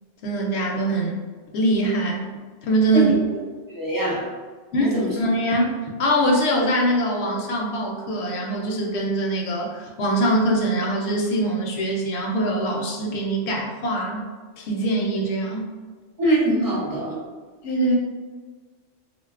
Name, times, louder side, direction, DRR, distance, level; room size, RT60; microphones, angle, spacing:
voice 1, 0.2-1.2 1.5-2.3 2.6-3.1 4.7-14.3 14.6-15.7 17.6-18.0, right 1 dB, 70° left, 0 dB, 0.8 m, -23 dB
voice 2, 3.7-4.2 4.8-5.1 16.2-17.2, right 1 dB, 25° right, -7 dB, 0.5 m, -22 dB
3.7 x 2.2 x 2.3 m, 1.4 s
omnidirectional pair, 1.3 m